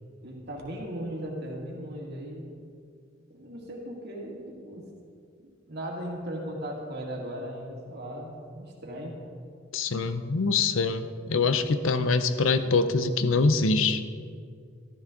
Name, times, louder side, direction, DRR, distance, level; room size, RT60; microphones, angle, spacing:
voice 1, 0.2-2.5 3.3-4.8 5.4-9.2, equal, 55° right, -1 dB, 2.3 m, -37 dB
voice 2, 9.7-14.0, left 4 dB, 90° left, 10 dB, 0.7 m, -24 dB
14.0 x 12.5 x 3.9 m, 2.3 s
head